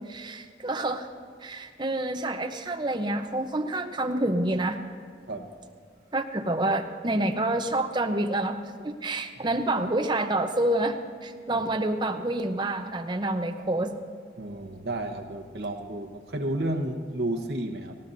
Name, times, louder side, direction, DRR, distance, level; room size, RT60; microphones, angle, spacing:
voice 1, 0.1-1.1 1.4-4.8 6.1-13.9, right 1 dB, 25° right, 5 dB, 0.7 m, -28 dB
voice 2, 14.4-18.0, right 1 dB, 70° right, 3 dB, 1.1 m, -32 dB
18.5 x 17.0 x 2.7 m, 2.1 s
head